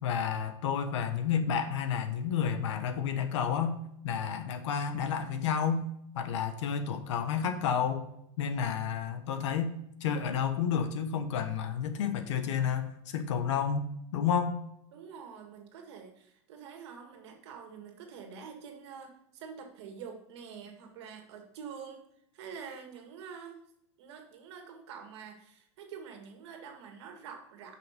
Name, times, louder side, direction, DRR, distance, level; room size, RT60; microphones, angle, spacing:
voice 1, 0.0-3.8 4.0-5.9 6.1-8.1 8.4-14.6, left 7 dB, 70° left, 8 dB, 1.2 m, -31 dB
voice 2, 14.9-22.0 22.3-23.6 24.0-27.8, right 6 dB, 60° right, 4 dB, 2.0 m, -46 dB
9.9 x 5.9 x 5.2 m, 0.75 s
supercardioid pair, 175°, 16 cm